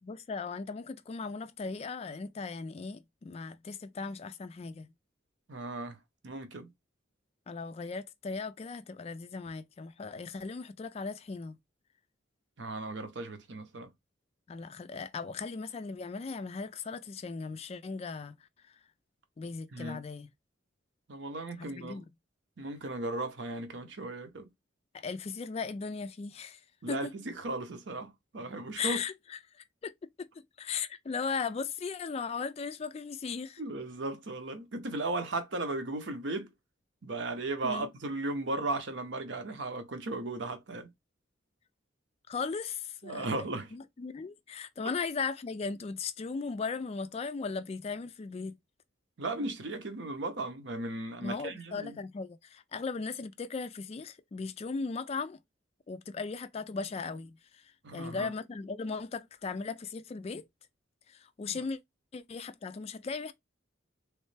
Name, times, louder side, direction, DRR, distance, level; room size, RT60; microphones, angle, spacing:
voice 1, 0.0-4.9 7.5-11.6 14.5-18.4 18.6-18.7 19.4-20.3 21.6-22.0 24.9-26.6 26.9-27.1 28.8-29.4 29.8-29.9 30.2-30.3 30.6-33.6 37.6-37.9 42.3-43.5 43.7-48.6 51.2-55.4 55.9-60.4 61.1-61.8 62.1-63.3, left 4 dB, 30° left, 0.3 m, -37 dB
voice 2, 5.5-6.0 6.2-6.7 12.6-13.9 19.7-20.0 21.1-22.0 22.6-24.5 26.8-29.0 33.6-36.5 37.0-40.9 43.0-43.7 49.2-52.0 57.8-58.3 61.5-61.6, right 2 dB, 65° right, 0.8 m, -36 dB
3.2 x 3.1 x 3.2 m
head